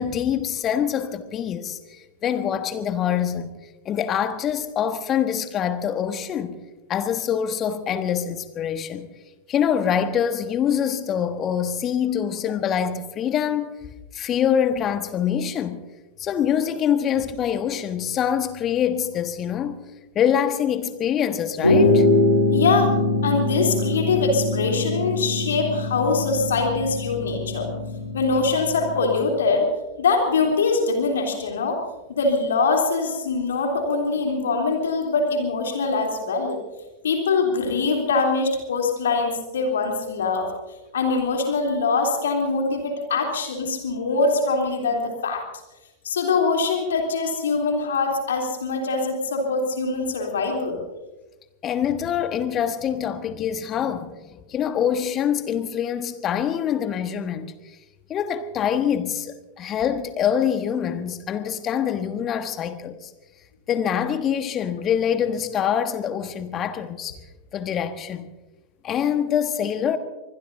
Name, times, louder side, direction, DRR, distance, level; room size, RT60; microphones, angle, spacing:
voice 1, 0.0-3.5 3.8-6.6 6.9-9.1 9.5-13.8 14.1-15.8 16.2-19.8 20.1-22.1 51.6-57.5 58.1-63.1 63.7-67.2 67.5-68.3 68.8-70.0, left 8 dB, 30° left, 1.4 m, -25 dB
sound 1, 21.6-29.3, left 2 dB, 85° left, 3.0 m, -23 dB
voice 2, 22.5-22.9 23.2-27.7 28.1-29.7 30.0-31.8 32.1-36.6 37.0-40.5 40.9-45.4 46.0-50.8, left 4 dB, 65° left, 3.5 m, -23 dB
24.5 x 21.0 x 2.8 m
figure-of-eight pair, 90°, 0 cm